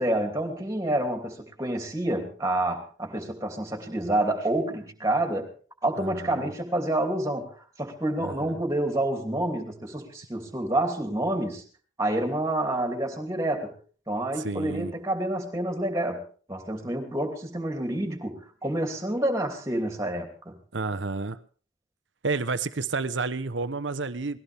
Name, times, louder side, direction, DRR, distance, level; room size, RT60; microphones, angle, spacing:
voice 1, 0.0-5.5 5.8-7.5 7.8-11.6 12.0-13.7 14.1-16.2 16.5-20.5, right 1 dB, 15° right, 4 dB, 2.8 m, -28 dB
voice 2, 6.0-6.5 8.2-8.6 14.4-14.9 20.7-21.4 22.2-24.4, right 3 dB, 90° right, 14 dB, 1.0 m, -30 dB
19.5 x 16.0 x 3.5 m, 0.41 s
head